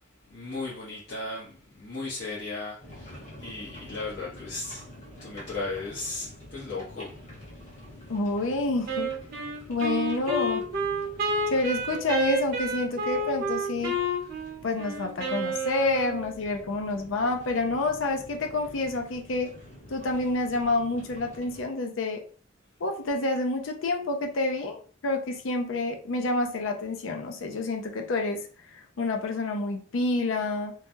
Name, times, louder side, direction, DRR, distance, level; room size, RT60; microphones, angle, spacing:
voice 1, 0.3-4.8 5.2-7.1, left 3 dB, 60° left, -9 dB, 1.0 m, -36 dB
sound 1, 2.8-21.6, left 1 dB, 35° left, 1.1 m, -48 dB
voice 2, 8.1-9.1 9.7-10.6 11.5-14.0 14.6-19.5 19.9-22.2 22.8-24.8 25.0-30.7, left 2 dB, 85° left, 3 dB, 0.5 m, -28 dB
Wind instrument woodwind instrument, 8.9-16.3, right 2 dB, 50° right, 0.9 m, -30 dB
3.2 x 2.2 x 2.6 m, 0.42 s
head